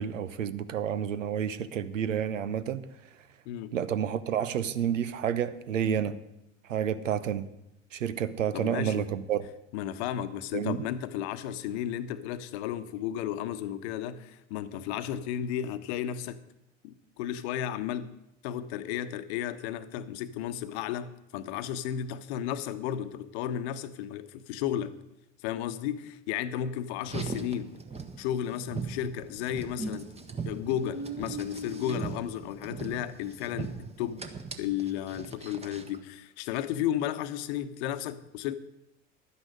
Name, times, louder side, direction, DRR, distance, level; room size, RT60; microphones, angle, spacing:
voice 1, 0.0-2.8 3.7-6.2 6.7-7.5 7.9-9.4 10.5-10.8, right 9 dB, 80° right, 15 dB, 0.8 m, -30 dB
voice 2, 8.5-9.1 9.7-16.4 16.8-18.1 18.4-25.0 25.4-27.7 28.2-30.1 30.5-34.2 34.6-38.6, left 10 dB, 60° left, 12 dB, 1.0 m, -33 dB
Car, 27.0-36.0, right 3 dB, 15° right, 1.4 m, -39 dB
11.5 x 9.7 x 6.5 m, 0.87 s
figure-of-eight pair, 75°, 38 cm